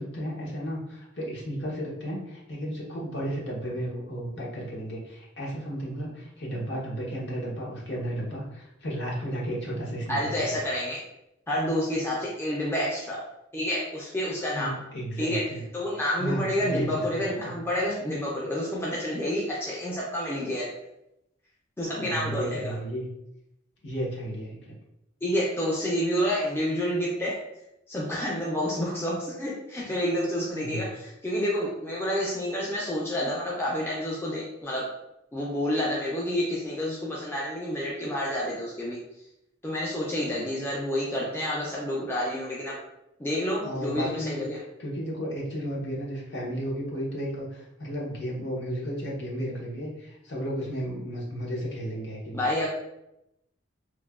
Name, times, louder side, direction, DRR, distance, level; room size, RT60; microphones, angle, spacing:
voice 1, 0.0-10.6 14.5-15.6 16.2-17.0 17.4-17.6 22.0-23.1 23.8-24.7 30.6-30.9 43.6-44.4 44.8-52.4, equal, 60° left, -4 dB, 0.7 m, -33 dB
voice 2, 10.1-11.0 11.5-13.2 13.5-14.7 15.2-15.5 15.7-20.7 21.8-22.7 25.2-27.4 27.9-34.9 35.3-39.0 39.6-42.8 43.2-44.6 52.3-52.7, equal, 10° left, -5 dB, 0.3 m, -29 dB
3.0 x 2.1 x 2.3 m, 0.84 s
head